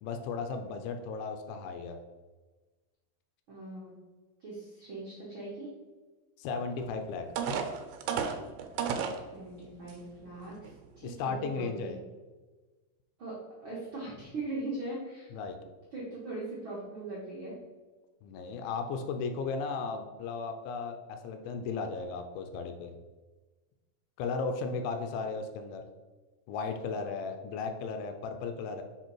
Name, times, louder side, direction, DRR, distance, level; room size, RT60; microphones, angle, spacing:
voice 1, 0.0-2.0 6.4-7.3 11.0-12.0 15.3-15.6 18.2-23.0 24.2-25.9 26.5-28.8, left 4 dB, 85° left, 6 dB, 2.4 m, -35 dB
voice 2, 3.5-3.9 4.4-5.7 9.3-11.9 13.2-15.3 15.9-17.6, right 2 dB, 60° right, -6 dB, 1.4 m, -40 dB
sound 1, 6.8-6.9 7.4-9.2 9.9-10.0 10.5-10.7, right 6 dB, 80° right, 2.5 m, -32 dB
6.7 x 4.0 x 4.5 m, 1.3 s
omnidirectional pair, 4.2 m